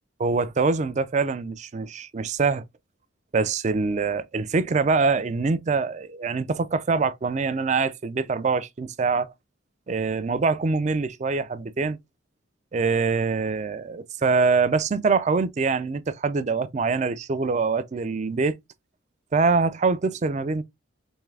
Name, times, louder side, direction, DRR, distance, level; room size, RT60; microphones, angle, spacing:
voice 1, 0.2-2.6 3.3-9.3 9.9-12.0 12.7-18.6 19.3-20.6, right 4 dB, 35° right, 0.4 m, -24 dB
3.6 x 3.1 x 3.2 m
head